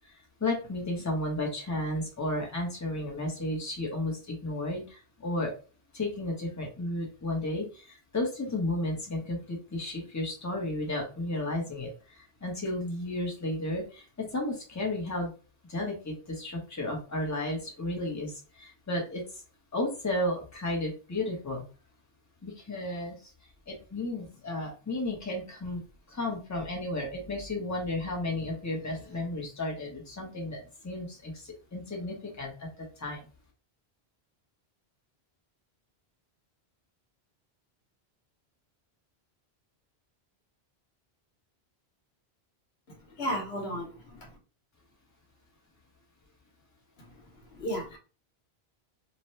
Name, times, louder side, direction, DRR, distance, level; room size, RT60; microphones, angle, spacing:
voice 1, 0.4-5.5 5.9-11.9 12.2-15.3 15.7-19.2 19.7-21.6 22.4-23.1 23.7-25.8 26.1-30.6 30.8-32.7 33.0-33.2, left 1 dB, 20° left, 0 dB, 0.8 m, -33 dB
voice 2, 42.9-44.3 47.0-47.1 47.5-48.0, equal, 75° left, 1 dB, 1.2 m, -35 dB
2.8 x 2.2 x 3.1 m, 0.34 s
omnidirectional pair, 1.1 m